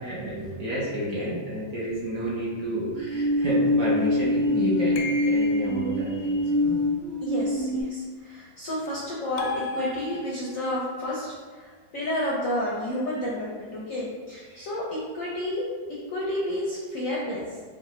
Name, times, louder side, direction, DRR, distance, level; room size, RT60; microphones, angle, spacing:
voice 1, 0.0-6.8 14.5-14.7, right 1 dB, 55° right, -7 dB, 1.1 m, -30 dB
sound 1, 2.9-7.8, left 1 dB, 85° right, 2.1 m, -24 dB
sound 2, 5.0-5.9 9.4-10.6, left 2 dB, 90° left, 1.3 m, -34 dB
voice 2, 7.2-15.7 16.1-17.4, left 1 dB, 70° left, -5 dB, 0.8 m, -31 dB
4.8 x 2.4 x 3.0 m, 1.5 s
omnidirectional pair, 2.0 m